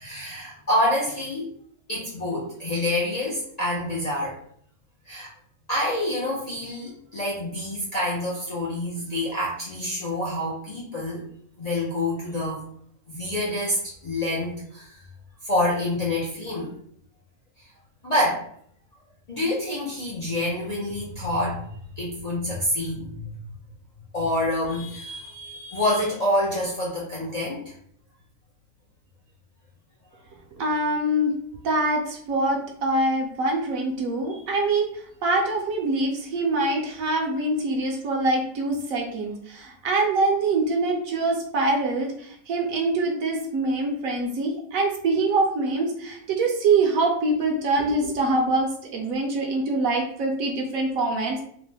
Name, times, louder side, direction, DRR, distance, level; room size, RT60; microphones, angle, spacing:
voice 1, 0.0-1.5 1.9-4.4 5.1-5.3 5.7-11.2 11.6-12.6 13.1-15.0 15.4-16.7 18.0-18.4 19.3-21.6 21.9-23.3 24.1-27.7 34.3-34.6, left 1 dB, 65° left, -6 dB, 0.4 m, -27 dB
voice 2, 30.6-31.3 31.6-51.4, right 2 dB, 70° right, 1 dB, 1.0 m, -24 dB
2.9 x 2.0 x 3.2 m, 0.64 s
omnidirectional pair, 1.6 m